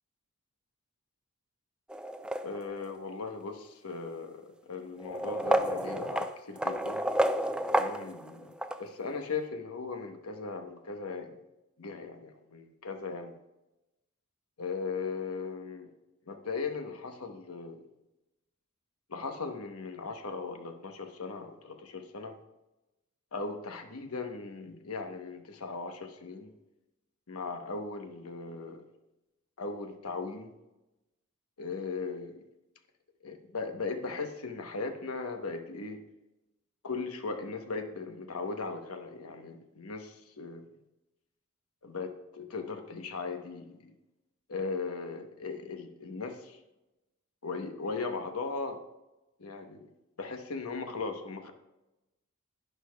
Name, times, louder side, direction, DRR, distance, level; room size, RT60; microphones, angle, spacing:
sound 1, 1.9-2.9 3.9-4.0 5.0-8.8, right 1 dB, 5° right, 0.3 m, -30 dB
voice 1, 2.4-7.1 7.7-8.5 8.8-11.3 11.8-13.3 14.6-15.9 16.3-17.8 19.1-22.4 23.3-26.5 27.3-28.8 29.6-30.5 31.6-32.4 33.2-36.0 36.8-40.6 41.8-43.9 44.5-46.6 47.4-48.8 49.4-49.8 50.2-51.5, left 4 dB, 90° left, 6 dB, 1.0 m, -38 dB
11.0 x 10.0 x 2.3 m, 0.98 s
head